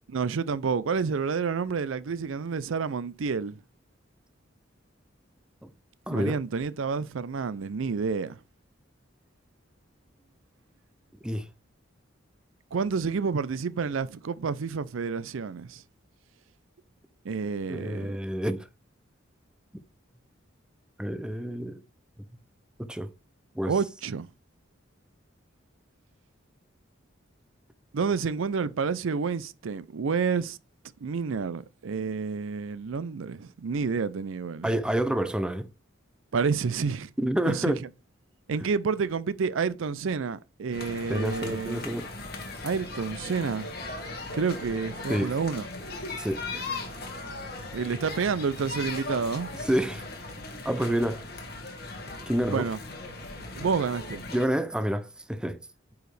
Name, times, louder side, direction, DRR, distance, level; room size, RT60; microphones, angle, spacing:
voice 1, 0.1-3.6 6.1-8.4 12.7-15.8 17.2-18.2 23.7-24.3 27.9-30.6 31.0-34.7 36.3-37.1 37.5-37.7 38.5-41.8 42.6-43.7 44.3-45.7 47.7-49.5 52.5-52.8 53.6-54.3, right 5 dB, 80° right, 0.5 m, -29 dB
voice 2, 6.1-6.4 11.2-11.5 17.7-18.7 21.0-21.8 22.8-23.1 23.6-23.8 34.6-35.7 37.2-37.8 41.1-42.1 45.1-45.3 46.2-46.6 49.6-50.0 50.6-51.2 52.3-52.7 54.3-55.6, right 1 dB, 5° right, 0.5 m, -28 dB
sound 1, 40.7-54.5, left 2 dB, 50° left, 1.7 m, -38 dB
9.0 x 4.8 x 3.3 m
head